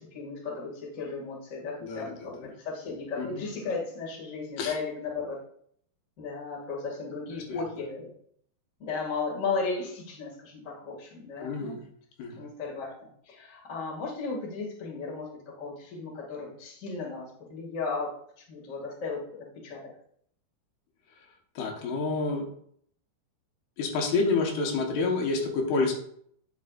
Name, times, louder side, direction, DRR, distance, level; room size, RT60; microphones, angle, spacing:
voice 1, 0.0-5.4 6.2-8.1 8.8-11.8 12.3-19.8, left 4 dB, 30° left, -4 dB, 1.6 m, -35 dB
voice 2, 1.8-2.3 3.2-3.4 4.6-4.7 7.5-7.6 11.4-11.8 12.2-12.5 21.6-22.4 23.8-25.9, left 3 dB, 80° left, 1 dB, 3.2 m, -28 dB
9.3 x 6.8 x 2.5 m, 0.65 s
omnidirectional pair, 4.6 m